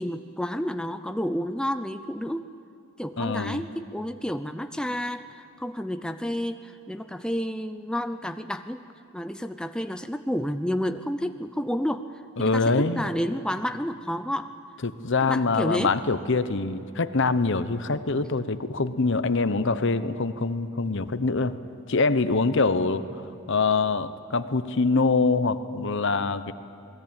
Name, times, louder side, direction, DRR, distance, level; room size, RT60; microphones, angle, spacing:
voice 1, 0.0-2.4 3.0-8.9 9.1-14.5 15.2-15.9, equal, 5° left, 8 dB, 0.5 m, -30 dB
voice 2, 3.2-3.6 12.4-13.1 14.8-21.6 21.9-23.0 23.5-26.5, left 3 dB, 60° left, 12 dB, 0.9 m, -24 dB
28.0 x 20.0 x 9.0 m, 2.7 s
head